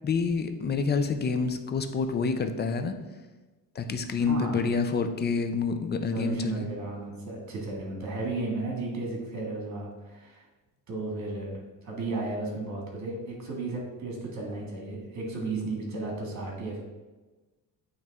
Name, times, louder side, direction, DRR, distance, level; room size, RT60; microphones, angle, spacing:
voice 1, 0.0-2.9 3.8-6.7, left 4 dB, 30° left, 8 dB, 0.4 m, -28 dB
voice 2, 4.1-4.6 6.0-10.4 10.9-16.8, right 3 dB, 50° right, -1 dB, 1.9 m, -34 dB
8.8 x 3.1 x 3.5 m, 1.2 s
cardioid pair, 130°, 36 cm